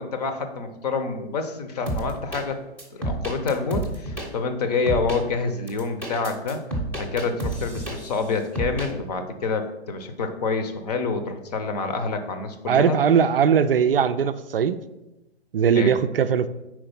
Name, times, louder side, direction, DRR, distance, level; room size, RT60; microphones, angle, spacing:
voice 1, 0.0-2.6 3.0-6.6 7.0-13.0 15.7-15.9, left 4 dB, 35° left, 7 dB, 0.7 m, -27 dB
sound 1, 1.9-2.4 2.8-4.3 4.9-5.2 5.7-8.2 8.6-8.9, right 1 dB, 5° left, 0.8 m, -29 dB
voice 2, 12.7-14.8 15.5-16.5, right 7 dB, 55° right, 11 dB, 0.4 m, -20 dB
4.7 x 4.5 x 5.6 m, 0.96 s
figure-of-eight pair, 125°, 34 cm